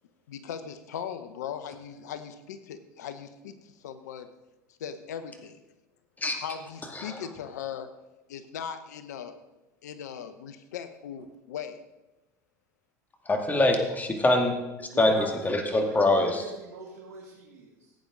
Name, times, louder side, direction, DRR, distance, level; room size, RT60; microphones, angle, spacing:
voice 1, 0.3-4.3 4.8-5.6 6.3-7.9 8.3-9.3 9.8-11.7, left 8 dB, 80° left, 11 dB, 0.9 m, -39 dB
voice 2, 13.3-14.5 14.8-16.4, left 2 dB, 20° left, 3 dB, 2.4 m, -24 dB
voice 3, 14.9-17.9, right 3 dB, 80° right, -5 dB, 2.6 m, -43 dB
16.5 x 8.8 x 4.0 m, 1.0 s
hypercardioid pair, 85°, 9 cm